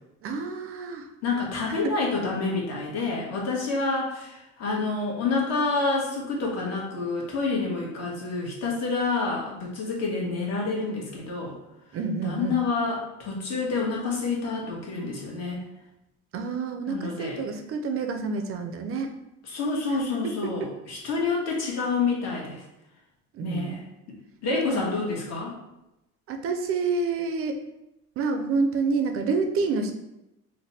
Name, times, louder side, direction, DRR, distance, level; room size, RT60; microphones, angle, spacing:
voice 1, 0.2-1.1 1.8-1.9 11.9-12.6 16.3-19.2 20.2-20.7 23.3-23.8 24.5-24.8 26.3-27.6 28.2-29.9, right 4 dB, 50° right, 5 dB, 0.4 m, -28 dB
voice 2, 1.2-11.5 12.2-15.6 16.9-17.4 19.5-22.6 23.4-23.8 24.4-25.6, left 3 dB, 60° left, -2 dB, 1.2 m, -28 dB
3.3 x 2.1 x 4.1 m, 0.90 s
cardioid pair, 125°, 30 cm